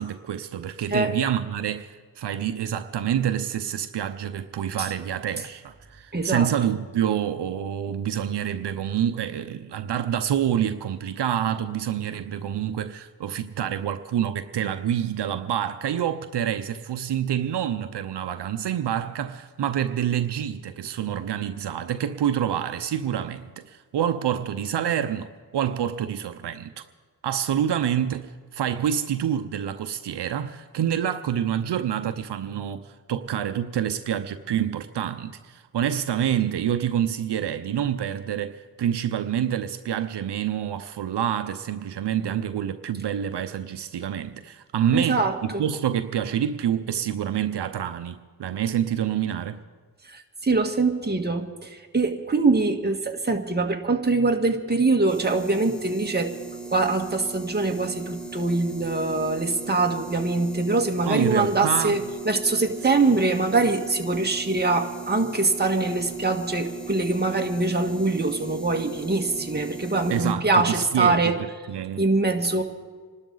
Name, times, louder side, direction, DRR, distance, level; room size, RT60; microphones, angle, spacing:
voice 1, 0.0-26.8 27.2-49.6 61.0-62.0 70.1-71.3 71.7-72.1, right 9 dB, 80° right, 0.8 m, -27 dB
voice 2, 6.1-6.5 44.9-45.6 50.1-56.3 56.7-71.4 72.0-72.6, right 3 dB, 25° right, 1.6 m, -23 dB
sound 1, 55.1-70.3, right 4 dB, ahead, 1.3 m, -38 dB
26.5 x 12.5 x 4.0 m
cardioid pair, 70°, 41 cm